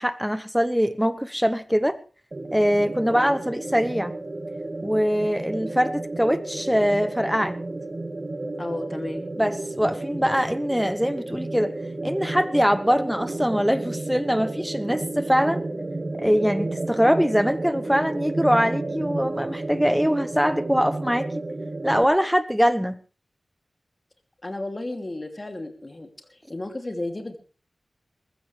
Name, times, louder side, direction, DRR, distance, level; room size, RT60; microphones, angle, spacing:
voice 1, 0.0-2.0 2.5-4.1 4.8-7.6 9.4-11.7 12.0-15.6 16.2-21.3 21.8-23.0, equal, ahead, 1.1 m, -23 dB
sound 1, 2.3-22.0, right 2 dB, 45° right, 2.1 m, -32 dB
voice 2, 8.6-9.2 24.4-27.4, left 2 dB, 35° left, 2.9 m, -33 dB
20.5 x 15.0 x 3.4 m
wide cardioid pair, 60°, 0 cm